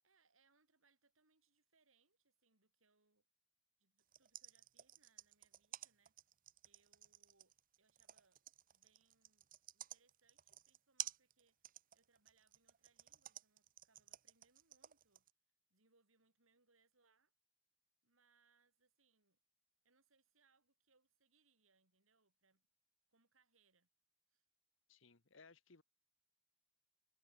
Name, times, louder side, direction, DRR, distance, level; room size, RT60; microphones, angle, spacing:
voice 1, 0.0-3.3 3.8-6.2 6.6-8.4 8.7-15.3 15.7-17.3 18.0-19.4 19.8-22.7 23.1-23.9 24.3-24.5, right 4 dB, 90° right, 4.7 m, -79 dB
sound 1, 4.0-15.3, right 12 dB, 45° right, 0.7 m, -52 dB
voice 2, 24.9-25.8, left 4 dB, 70° left, 1.4 m, -63 dB
head